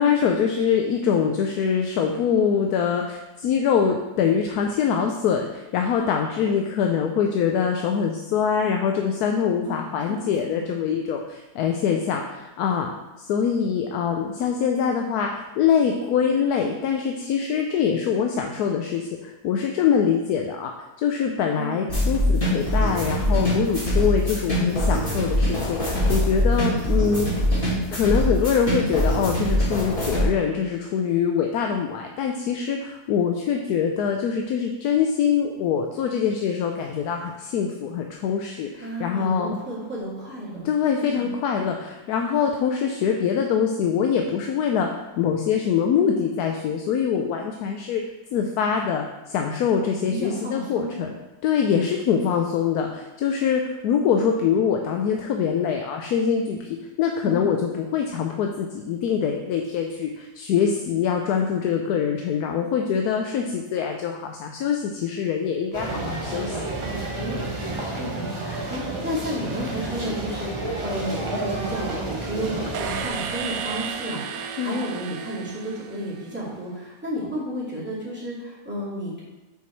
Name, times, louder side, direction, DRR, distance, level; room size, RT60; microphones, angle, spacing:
voice 1, 0.0-20.7 21.0-27.4 27.9-39.6 40.6-48.0 48.3-51.1 51.4-56.7 57.0-66.6 74.6-74.7, left 7 dB, 75° left, 3 dB, 1.1 m, -24 dB
voice 2, 9.6-10.3 10.5-10.7 21.5-22.1 38.8-40.7 41.0-41.3 49.8-51.0 57.2-57.4 66.8-79.2, equal, 5° right, -8 dB, 2.4 m, -32 dB
sound 1, 21.9-30.2, equal, 30° left, 2.6 m, -23 dB
sound 2, 65.7-73.1, right 2 dB, 25° right, 0.7 m, -30 dB
sound 3, 72.7-76.6, right 6 dB, 70° right, 0.9 m, -33 dB
7.0 x 4.6 x 4.6 m, 1.1 s
omnidirectional pair, 1.8 m